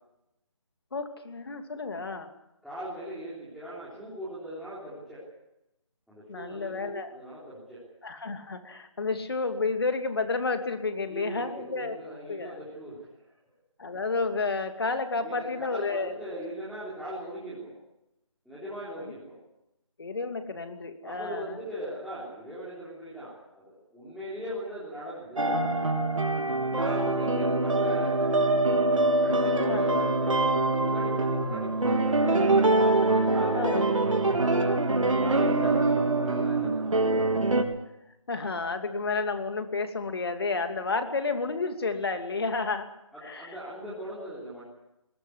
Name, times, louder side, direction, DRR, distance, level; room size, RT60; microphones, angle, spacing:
voice 1, 0.9-2.3 6.3-7.1 8.0-12.0 12.2-12.6 13.8-16.1 20.0-21.6 29.7-29.8 31.5-31.6 33.5-33.8 38.3-42.9 43.2-43.5, left 3 dB, 50° left, 7 dB, 2.7 m, -31 dB
voice 2, 2.6-5.2 6.1-7.8 11.1-13.3 15.2-17.7 18.5-19.4 21.0-25.6 26.6-28.2 29.2-30.4 30.8-32.6 33.1-34.6 35.2-37.3 43.1-44.6, right 1 dB, ahead, -10 dB, 3.7 m, -39 dB
sound 1, 25.4-37.6, right 2 dB, 90° right, 3.8 m, -24 dB
21.5 x 19.5 x 8.2 m, 0.88 s
figure-of-eight pair, 170°, 16 cm